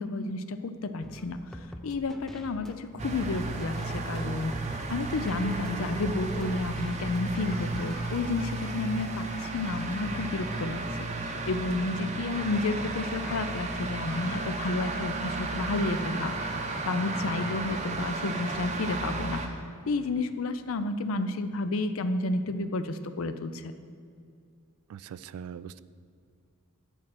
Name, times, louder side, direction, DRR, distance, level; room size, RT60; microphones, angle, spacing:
voice 1, 0.0-16.3 16.8-23.7, left 2 dB, 65° left, 11 dB, 0.5 m, -31 dB
sound 1, 1.0-8.0, equal, ahead, 0.4 m, -46 dB
sound 2, 3.0-19.5, right 3 dB, 30° right, 0.6 m, -34 dB
sound 3, 3.7-4.6 5.1-5.2 5.4-6.7 7.2-11.5 12.3-13.6 14.0-15.0 15.7-18.1, left 2 dB, 30° left, 1.9 m, -46 dB
voice 2, 24.9-25.8, right 8 dB, 80° right, 16 dB, 0.3 m, -41 dB
10.0 x 4.3 x 6.0 m, 2.4 s
head